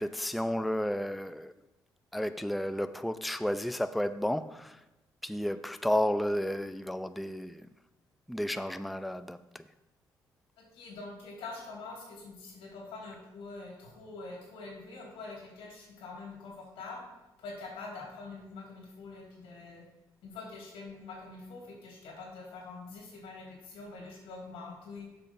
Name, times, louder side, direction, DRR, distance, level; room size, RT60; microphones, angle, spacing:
voice 1, 0.0-1.5 2.1-4.8 5.2-7.7 8.3-9.6, left 1 dB, ahead, 0.4 m, -32 dB
voice 2, 10.6-17.0 17.4-19.8 20.2-25.1, left 3 dB, 85° left, 2.9 m, -45 dB
7.2 x 5.8 x 5.6 m
supercardioid pair, 70°, 9 cm